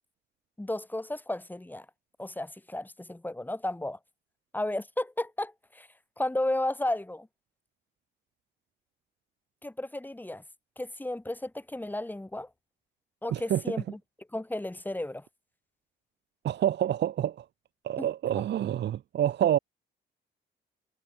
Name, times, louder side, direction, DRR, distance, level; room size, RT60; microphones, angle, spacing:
voice 1, 0.6-1.9 2.2-4.0 4.5-5.9 6.2-7.3 9.6-10.4 10.8-12.5 13.2-14.0 14.3-15.3 18.0-18.1, left 1 dB, 10° left, 3.0 m, -33 dB
voice 2, 13.3-13.6 16.4-17.4 17.8-19.6, right 11 dB, 60° right, 0.9 m, -27 dB
cardioid pair, 90°, 20 cm